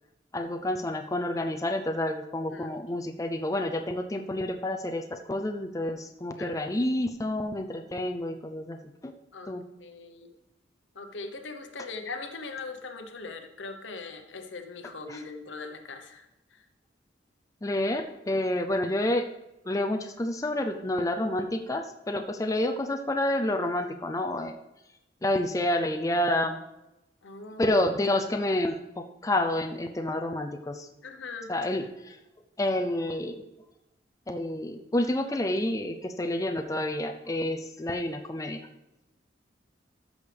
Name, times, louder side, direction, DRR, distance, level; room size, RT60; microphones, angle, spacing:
voice 1, 0.3-9.1 9.5-9.6 15.1-15.2 17.6-19.2 19.7-24.6 25.2-26.6 27.6-30.9 31.5-32.2 32.6-33.4 34.3-38.6, left 1 dB, 20° left, 5 dB, 0.4 m, -29 dB
voice 2, 6.4-6.9 9.3-9.5 9.8-10.3 10.9-16.3 16.5-16.6 27.2-27.8 31.0-31.5, left 3 dB, 80° left, 6 dB, 0.9 m, -40 dB
13.5 x 6.3 x 3.4 m, 0.93 s
head